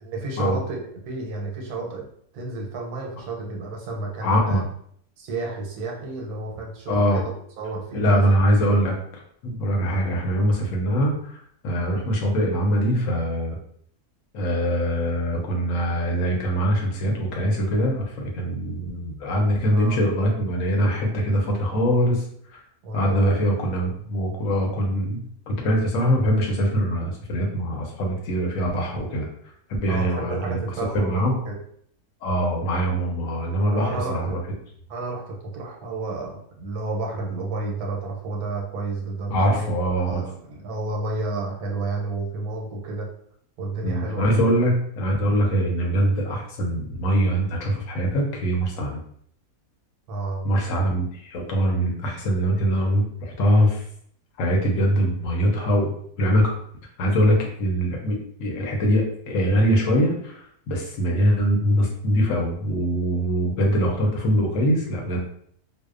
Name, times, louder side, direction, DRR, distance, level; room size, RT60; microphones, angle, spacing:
voice 1, 0.0-0.8 1.0-2.1 2.3-4.6 5.2-7.2 7.6-8.4 19.7-20.0 22.8-23.4 29.9-31.6 33.7-34.4 34.9-39.7 40.1-43.1 43.6-44.5 50.1-50.4, right 3 dB, 85° right, 0 dB, 1.1 m, -31 dB
voice 2, 4.2-4.6 6.9-7.2 7.9-13.6 14.3-22.2 22.9-29.3 29.7-30.6 30.9-31.4 32.2-34.4 39.3-40.2 43.8-49.0 50.4-53.8 54.4-55.9 56.2-56.5 57.0-65.3, equal, 70° left, 0 dB, 0.9 m, -23 dB
2.6 x 2.0 x 2.3 m, 0.65 s
omnidirectional pair, 1.6 m